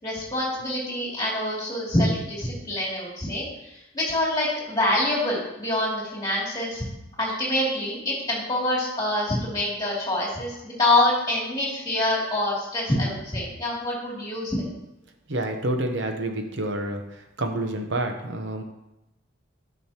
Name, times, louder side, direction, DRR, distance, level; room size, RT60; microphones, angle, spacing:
voice 1, 0.0-3.4 3.7-6.8 7.2-14.7, left 1 dB, 20° left, -5 dB, 2.7 m, -26 dB
voice 2, 15.3-17.0 17.4-18.6, right 1 dB, 60° right, 4 dB, 0.9 m, -28 dB
9.9 x 6.1 x 3.0 m, 0.94 s
head